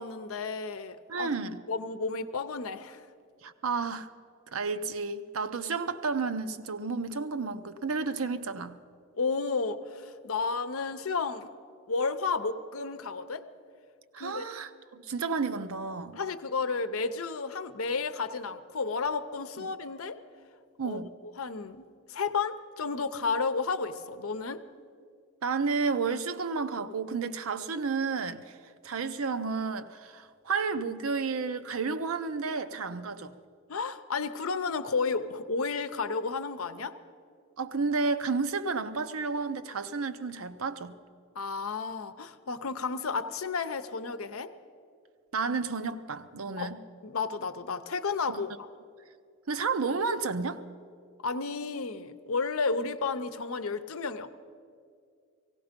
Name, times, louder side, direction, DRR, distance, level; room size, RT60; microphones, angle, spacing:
voice 1, 0.0-1.3 1.7-3.0 9.1-11.5 11.9-13.4 14.2-14.5 16.1-20.2 20.8-21.0 21.4-24.6 33.7-37.0 41.3-44.5 46.6-46.7 47.0-48.7 51.2-54.4, left 4 dB, 85° left, 11 dB, 0.7 m, -32 dB
voice 2, 1.1-1.6 3.4-4.1 4.5-8.8 14.1-16.2 19.6-19.7 20.8-21.1 25.4-28.6 28.8-33.4 37.6-41.0 45.3-46.8 48.3-48.4 49.5-50.6, right 4 dB, 90° right, 11 dB, 0.7 m, -31 dB
17.0 x 16.5 x 5.2 m, 2.3 s
head